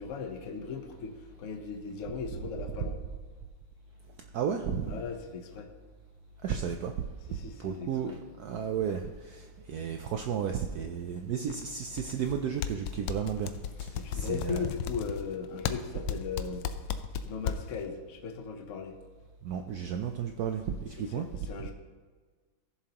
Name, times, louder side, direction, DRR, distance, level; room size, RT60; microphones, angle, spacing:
voice 1, 0.0-3.0 4.8-5.7 7.3-8.2 13.9-16.6 17.2-19.0 21.0-21.7, left 5 dB, 50° left, 4 dB, 1.0 m, -38 dB
voice 2, 4.3-5.0 6.4-6.9 7.6-13.5 13.8-14.7 19.4-21.3 21.6-21.7, right 7 dB, 85° right, 5 dB, 0.8 m, -33 dB
sound 1, 11.5-12.4 12.6-17.8, left 9 dB, 75° left, 1.1 m, -34 dB
15.5 x 7.2 x 2.9 m, 1.5 s
omnidirectional pair, 2.3 m